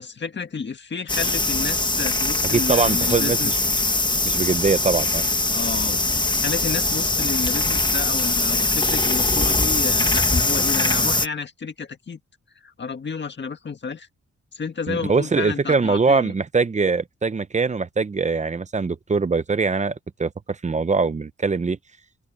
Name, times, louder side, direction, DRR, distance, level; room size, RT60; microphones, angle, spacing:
voice 1, 0.0-3.6 5.5-6.0 6.4-12.2 12.6-14.1 14.5-16.3, left 5 dB, 40° left, 1.8 m, -31 dB
sound 1, 1.1-11.3, left 2 dB, 15° left, 1.3 m, -22 dB
voice 2, 2.5-3.6 4.2-5.2 14.9-21.8, right 4 dB, 25° right, 0.6 m, -22 dB
open air
wide cardioid pair, 140°, 29 cm